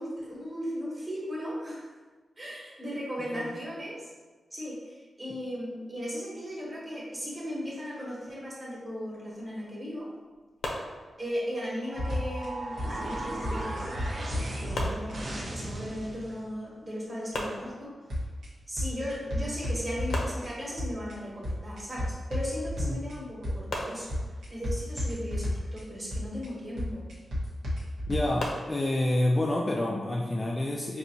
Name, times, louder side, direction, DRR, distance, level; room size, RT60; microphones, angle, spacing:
voice 1, 0.0-1.9 2.4-4.1 4.5-10.1 11.2-13.9 14.3-17.9 18.7-24.2 24.5-27.1, equal, 20° right, -5 dB, 1.1 m, -37 dB
sound 1, 10.6-11.6 14.7-15.8 17.3-18.3 20.1-21.1 23.7-24.7 28.4-28.9, left 1 dB, 75° left, 0.6 m, -38 dB
sound 2, 11.9-16.4, right 1 dB, 40° right, 0.5 m, -37 dB
sound 3, 12.0-12.5 12.8-13.1 13.4-15.1 18.1-18.5 18.8-20.5 20.8-21.1 21.4-23.1 23.4-23.8 24.1-25.8 26.1-26.5 26.8-28.5, left 1 dB, 80° right, 1.0 m, -31 dB
voice 2, 28.1-31.0, left 1 dB, 25° left, -1 dB, 0.3 m, -28 dB
4.9 x 2.7 x 2.7 m, 1.3 s
wide cardioid pair, 150°, 0 cm